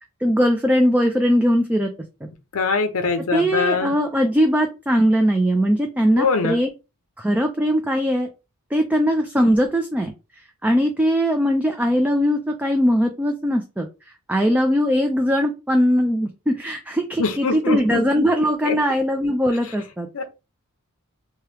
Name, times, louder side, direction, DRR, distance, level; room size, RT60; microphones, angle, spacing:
voice 1, 0.2-1.9 3.3-6.7 7.2-8.3 8.7-10.1 10.6-13.9 14.3-20.1, equal, 5° right, 0.3 m, -20 dB
voice 2, 2.5-3.9 6.2-6.6 17.2-18.0 18.6-18.8 20.1-20.2, left 4 dB, 70° left, 0.6 m, -22 dB
2.9 x 2.3 x 3.2 m
head